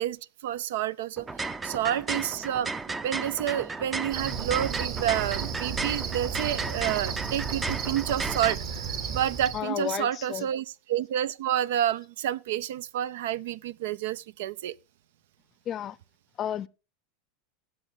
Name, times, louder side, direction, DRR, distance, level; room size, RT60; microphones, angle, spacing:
voice 1, 0.0-2.7 3.0-14.7, right 11 dB, 75° right, 0.5 m, -29 dB
sound 1, 1.2-8.5, right 3 dB, 15° right, 0.5 m, -34 dB
Cricket, 4.1-9.6, right 6 dB, 50° right, 2.6 m, -33 dB
voice 2, 9.5-10.5 15.7-16.0 16.4-16.7, left 10 dB, 35° left, 0.5 m, -32 dB
17.0 x 6.5 x 3.7 m
supercardioid pair, 125°, 0 cm